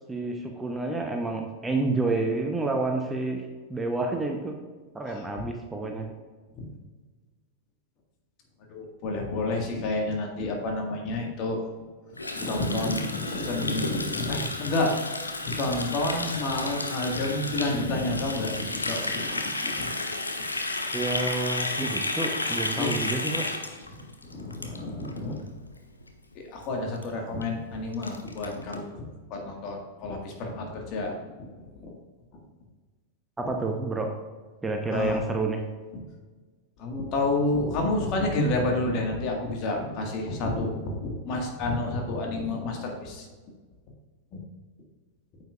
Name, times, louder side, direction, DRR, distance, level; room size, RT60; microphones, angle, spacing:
voice 1, 0.1-3.4 3.7-4.5 4.9-6.1 20.9-23.4 33.4-34.1 34.6-35.6, right 3 dB, 10° right, 2 dB, 0.8 m, -29 dB
voice 2, 5.1-5.4 6.6-6.7 8.7-11.6 12.3-14.9 15.2-19.9 22.8-22.9 23.9-24.0 24.3-25.4 26.3-31.1 31.8-31.9 34.9-35.2 35.9-36.0 36.8-43.3 44.3-44.4, left 2 dB, 40° left, 1 dB, 1.7 m, -30 dB
Water tap faucet, 12.2-25.2 25.5-25.7 26.0-26.4 26.6-26.7 26.9-27.0 27.4-27.5 27.7-28.8, left 2 dB, 80° left, 0.7 m, -32 dB
9.0 x 7.5 x 2.4 m, 1.4 s
figure-of-eight pair, 90°, 0 cm